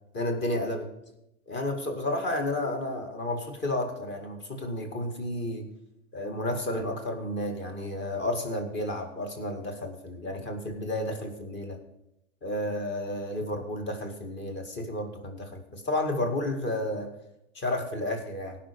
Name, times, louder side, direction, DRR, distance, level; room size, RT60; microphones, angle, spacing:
voice 1, 0.1-0.9 1.5-5.7 6.1-11.8 12.4-17.1 17.5-18.6, left 1 dB, 30° left, 4 dB, 2.2 m, -31 dB
17.5 x 5.9 x 5.2 m, 0.84 s
hypercardioid pair, 105°, 36 cm